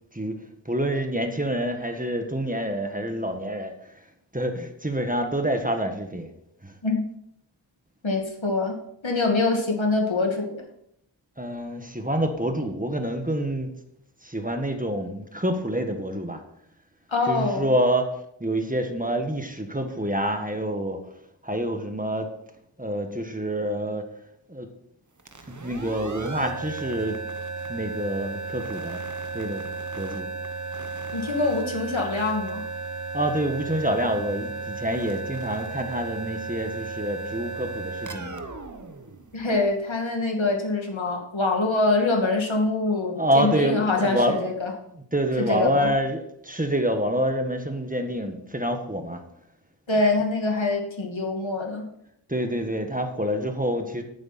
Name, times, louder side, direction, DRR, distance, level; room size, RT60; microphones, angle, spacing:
voice 1, 0.6-3.7 4.3-6.3 6.6-6.7 11.4-13.7 14.2-16.4 17.3-18.1 18.4-21.0 21.4-22.3 22.8-24.1 24.5-24.7 25.5-27.2 27.7-29.0 29.3-29.6 29.9-30.3 33.1-38.4 43.2-44.7 45.1-49.2 52.3-54.0, right 1 dB, 20° right, 5 dB, 1.5 m, -27 dB
voice 2, 8.0-8.8 9.0-10.6 17.1-17.6 31.1-32.6 39.3-44.7 45.5-45.9 49.9-51.9, left 3 dB, 80° left, 1 dB, 2.4 m, -24 dB
sound 1, 25.2-39.8, right 4 dB, 40° right, 1.2 m, -34 dB
11.0 x 9.2 x 4.3 m, 0.73 s
wide cardioid pair, 50°, 46 cm